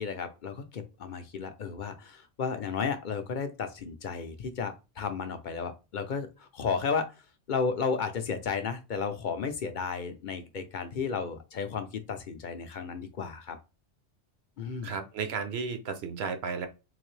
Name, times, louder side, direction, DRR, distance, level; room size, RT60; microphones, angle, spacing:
voice 1, 0.0-7.1 7.5-13.6 14.6-14.9, left 5 dB, 55° left, 0.6 m, -33 dB
voice 2, 14.8-16.7, right 5 dB, 65° right, 0.9 m, -33 dB
3.9 x 2.6 x 3.2 m
omnidirectional pair, 1.2 m